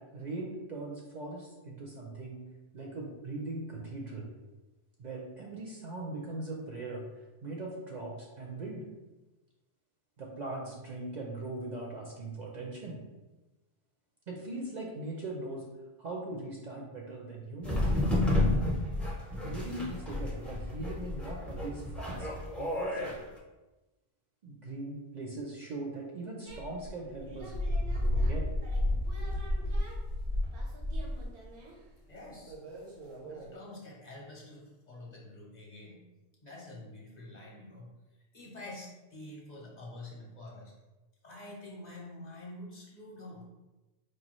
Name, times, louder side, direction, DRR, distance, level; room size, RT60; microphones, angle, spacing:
voice 1, 0.0-2.5 2.7-4.3 5.0-7.1 7.4-8.9 10.2-13.0 14.3-15.7 16.0-17.9 19.4-22.3 22.6-23.2 24.4-27.5 27.9-28.5, right 2 dB, 55° right, -2 dB, 0.6 m, -40 dB
sound 1, 17.6-23.1, left 1 dB, ahead, 0.4 m, -31 dB
sound 2, 26.5-31.7 32.5-33.5, left 1 dB, 85° right, 1.1 m, -32 dB
voice 2, 32.1-32.6 33.2-36.0 36.4-38.0 38.3-40.7 41.2-43.4, left 1 dB, 45° left, -3 dB, 0.8 m, -47 dB
4.7 x 2.3 x 3.0 m, 1.1 s
omnidirectional pair, 1.1 m